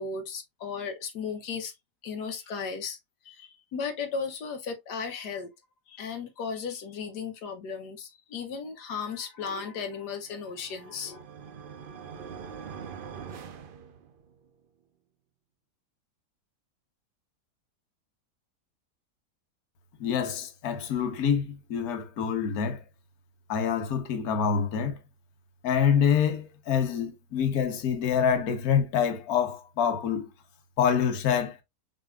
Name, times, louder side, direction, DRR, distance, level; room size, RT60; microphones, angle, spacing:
voice 1, 0.0-1.7 2.0-3.0 3.2-5.5 5.9-11.2, left 5 dB, 85° left, 1.4 m, -35 dB
sound 1, 10.2-14.5, right 6 dB, 85° right, 0.4 m, -44 dB
voice 2, 20.0-22.8 23.5-25.0 25.6-30.3 30.8-31.6, left 7 dB, 65° left, 1.4 m, -26 dB
6.2 x 3.3 x 2.3 m
omnidirectional pair, 1.7 m